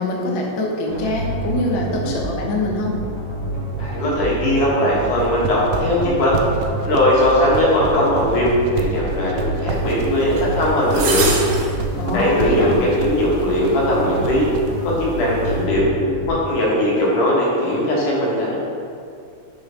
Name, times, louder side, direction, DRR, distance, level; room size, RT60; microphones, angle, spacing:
voice 1, 0.0-2.9 12.0-12.7, left 2 dB, 70° left, -1 dB, 1.1 m, -24 dB
sound 1, 0.9-16.3, right 2 dB, 25° right, 0.8 m, -28 dB
voice 2, 3.8-6.4 6.8-11.3 12.1-14.5 14.8-15.9 16.3-18.6, left 1 dB, 85° left, -5 dB, 3.0 m, -19 dB
sound 2, 5.1-14.7, right 6 dB, 90° right, 1.5 m, -28 dB
sound 3, 10.4-10.5 10.9-11.7 12.2-12.3 13.4-13.5, right 4 dB, 60° right, 1.5 m, -23 dB
5.6 x 5.5 x 5.0 m, 2.4 s
omnidirectional pair, 3.5 m